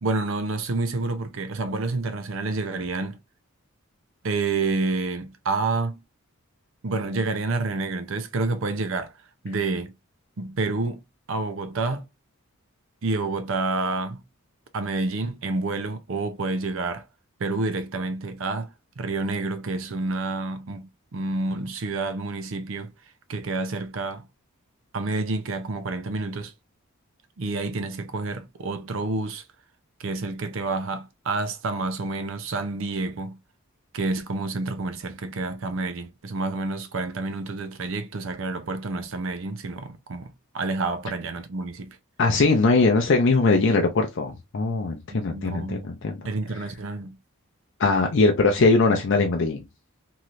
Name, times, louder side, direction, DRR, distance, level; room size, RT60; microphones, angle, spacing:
voice 1, 0.0-3.2 4.2-6.0 6.8-9.1 9.4-9.9 10.4-11.0 11.3-12.1 13.0-14.2 14.7-17.0 17.4-18.7 19.0-22.9 23.3-24.3 24.9-26.5 27.4-29.4 30.0-33.4 33.9-42.0 45.1-45.9 46.2-47.2, right 3 dB, 60° right, 0.5 m, -29 dB
voice 2, 42.2-46.2 47.8-49.6, left 3 dB, 55° left, 0.5 m, -21 dB
3.1 x 2.8 x 2.4 m
head